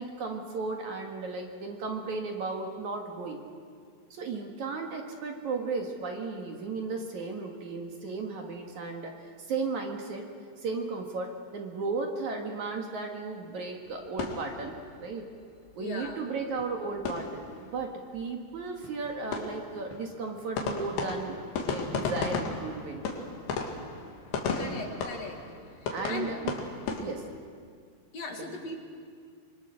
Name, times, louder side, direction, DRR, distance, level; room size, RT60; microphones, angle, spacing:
voice 1, 0.0-3.4 4.1-10.3 10.6-15.2 15.8-23.1 24.5-24.8 25.9-26.6 27.0-27.2 28.4-28.6, right 4 dB, 55° right, 2 dB, 2.7 m, -35 dB
sound 1, 13.9-15.3 15.6-15.7 16.0-16.1 16.4-17.9 18.1-18.3 18.5-27.0, left 4 dB, 70° left, 3.9 m, -35 dB
voice 2, 15.8-16.2 24.6-25.4 25.8-26.3 28.1-28.8, left 3 dB, 50° left, 3 dB, 2.7 m, -38 dB
26.0 x 24.0 x 6.5 m, 2.1 s
omnidirectional pair, 4.7 m